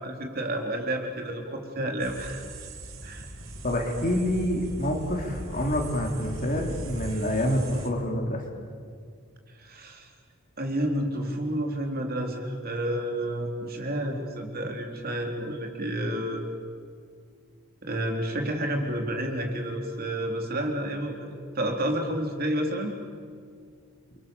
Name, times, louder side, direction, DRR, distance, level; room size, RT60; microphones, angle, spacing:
voice 1, 0.0-2.4 3.0-3.3 9.6-10.1 10.6-16.5 17.8-22.9, right 1 dB, 45° right, 3 dB, 3.5 m, -30 dB
sound 1, 2.0-7.9, right 1 dB, 65° right, 2.6 m, -39 dB
voice 2, 3.6-8.4, equal, 40° left, 2 dB, 3.6 m, -27 dB
29.5 x 24.0 x 7.0 m, 2.1 s
head